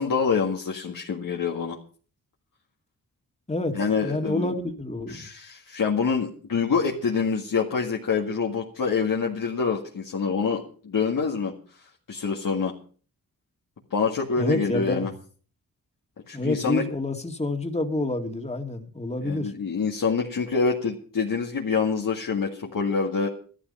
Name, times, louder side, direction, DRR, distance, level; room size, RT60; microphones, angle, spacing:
voice 1, 0.0-1.8 3.7-4.5 5.1-11.5 12.1-12.7 13.9-15.1 16.3-16.9 19.2-23.3, left 5 dB, 70° left, -1 dB, 2.0 m, -26 dB
voice 2, 3.5-5.2 14.4-15.1 16.3-19.5, left 2 dB, 20° left, 4 dB, 2.1 m, -28 dB
13.0 x 13.0 x 5.5 m, 0.42 s
cardioid pair, 60°, 34 cm